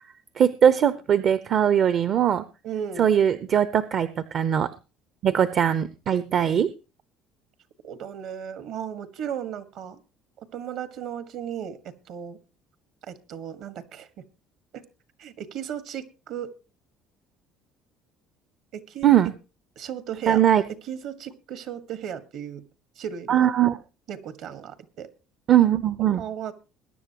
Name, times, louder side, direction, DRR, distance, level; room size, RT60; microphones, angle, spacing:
voice 1, 0.4-2.4 3.0-4.7 5.2-6.7 19.0-19.3 20.3-20.6 23.3-23.8 25.5-26.2, right 9 dB, 50° right, 14 dB, 0.6 m, -20 dB
voice 2, 2.6-3.2 7.8-10.0 10.4-12.4 13.1-14.2 14.7-14.8 15.2-16.5 18.7-19.1 19.7-20.4 20.8-22.6 23.0-23.5 24.1-25.1 26.2-26.5, right 8 dB, 70° right, 13 dB, 1.6 m, -35 dB
21.5 x 10.0 x 2.9 m, 0.31 s
supercardioid pair, 95°, 0 cm